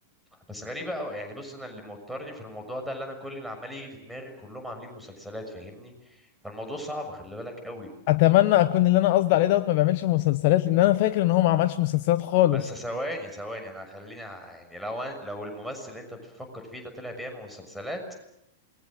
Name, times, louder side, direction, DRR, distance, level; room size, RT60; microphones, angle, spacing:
voice 1, 0.5-7.9 12.5-18.0, equal, ahead, 5 dB, 6.5 m, -37 dB
voice 2, 8.1-12.6, left 15 dB, 50° left, 10 dB, 0.9 m, -21 dB
28.0 x 22.0 x 7.7 m, 0.81 s
figure-of-eight pair, 100°, 0 cm